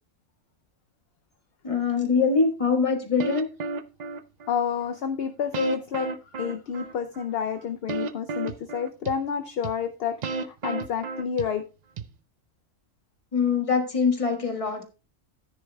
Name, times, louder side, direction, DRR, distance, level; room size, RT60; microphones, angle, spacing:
voice 1, 1.6-3.5 13.3-14.8, left 5 dB, 25° left, 4 dB, 1.5 m, -23 dB
sound 1, 3.2-4.6 5.5-7.3 7.9-9.2 9.6-9.7 10.2-11.6 12.0-12.1, right 4 dB, 85° right, 0.3 m, -32 dB
voice 2, 4.5-6.1 6.3-10.2 10.6-11.7, left 7 dB, 60° left, 7 dB, 0.7 m, -29 dB
14.5 x 9.6 x 2.2 m, 0.32 s
omnidirectional pair, 1.4 m